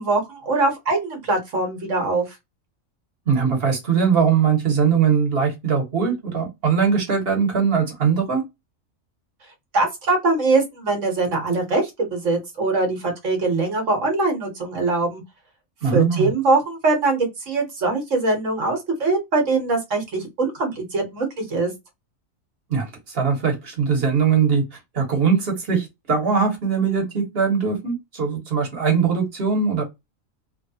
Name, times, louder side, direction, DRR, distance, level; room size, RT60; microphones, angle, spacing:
voice 1, 0.0-2.4 9.7-15.2 15.9-21.7, right 3 dB, 70° right, 1.4 m, -22 dB
voice 2, 3.3-8.4 15.8-16.3 22.7-29.8, right 6 dB, 50° right, 1.4 m, -21 dB
3.3 x 2.3 x 2.7 m
omnidirectional pair, 1.4 m